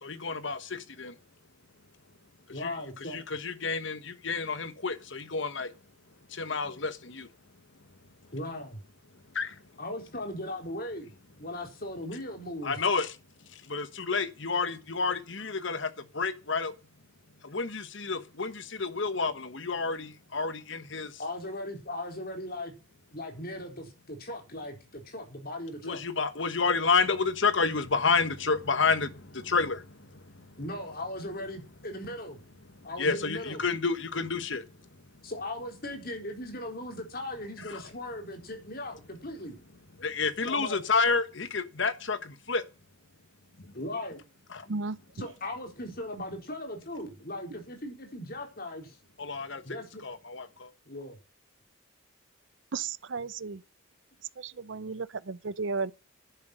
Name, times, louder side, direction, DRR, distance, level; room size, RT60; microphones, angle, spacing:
voice 1, 0.0-1.1 2.5-2.7 3.1-5.7 6.3-7.3 9.3-9.6 12.6-13.2 13.5-16.7 17.4-21.2 25.8-30.4 32.8-34.6 37.7-37.8 40.0-42.6 43.6-43.7 44.5-44.7 49.2-49.6 50.0-50.7, left 4 dB, 65° left, 1.3 m, -30 dB
voice 2, 2.5-3.2 8.3-8.8 9.8-11.1 11.4-12.8 21.2-22.7 23.1-26.0 30.6-32.4 32.8-33.6 35.2-39.6 40.4-40.8 43.7-44.2 45.1-49.0 49.6-50.0 50.9-51.2, left 1 dB, 45° left, 4.2 m, -38 dB
voice 3, 52.7-53.6 54.4-55.9, right 4 dB, 65° right, 0.6 m, -34 dB
10.5 x 7.6 x 8.0 m
head